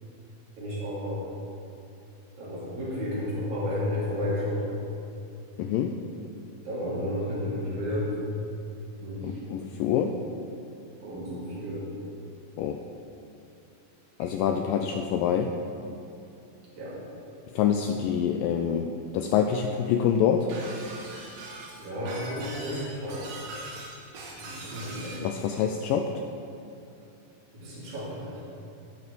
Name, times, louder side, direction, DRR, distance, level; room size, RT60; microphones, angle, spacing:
voice 1, 0.6-1.2 2.4-4.7 6.6-8.1 9.0-9.4 11.0-11.8 14.4-14.5 16.8-17.0 21.8-23.4 24.4-25.2 27.5-28.4, left 1 dB, 50° right, -8 dB, 4.2 m, -32 dB
voice 2, 5.6-6.0 9.2-10.2 12.6-12.8 14.2-15.5 17.6-20.5 25.2-26.1, left 8 dB, 85° left, 4 dB, 2.0 m, -26 dB
Shatter, 20.5-25.3, right 2 dB, 75° right, 3.3 m, -41 dB
16.0 x 7.1 x 4.1 m, 2.7 s
omnidirectional pair, 4.4 m